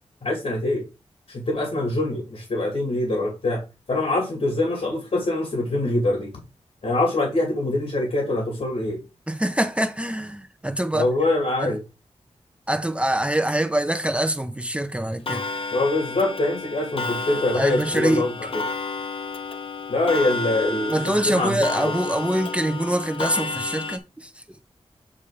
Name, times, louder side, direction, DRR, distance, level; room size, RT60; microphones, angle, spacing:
voice 1, 0.2-0.8 1.3-6.3 6.8-9.0 10.9-11.8 15.7-18.6 19.9-21.6, left 2 dB, 70° left, 2.4 m, -24 dB
voice 2, 9.3-11.1 11.6-11.7 12.7-15.4 17.5-18.2 20.9-24.3, right 1 dB, 10° right, 0.7 m, -24 dB
Clock, 15.3-24.0, left 3 dB, 55° left, 0.8 m, -31 dB
8.5 x 2.9 x 5.0 m
wide cardioid pair, 85°, 11 cm